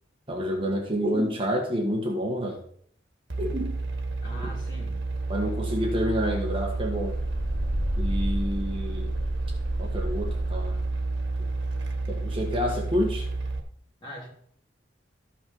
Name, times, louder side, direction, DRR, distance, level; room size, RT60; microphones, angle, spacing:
voice 1, 0.3-2.6 3.4-3.8 4.4-4.5 5.3-7.2 8.0-9.2 9.8-10.8 12.1-13.3, equal, 30° right, 0 dB, 1.4 m, -28 dB
sound 1, 3.3-13.6, right 2 dB, 80° right, 1.6 m, -29 dB
voice 2, 4.2-5.0 5.3-5.8 14.0-14.3, equal, 25° left, -4 dB, 3.5 m, -42 dB
13.0 x 5.8 x 5.5 m, 0.63 s
head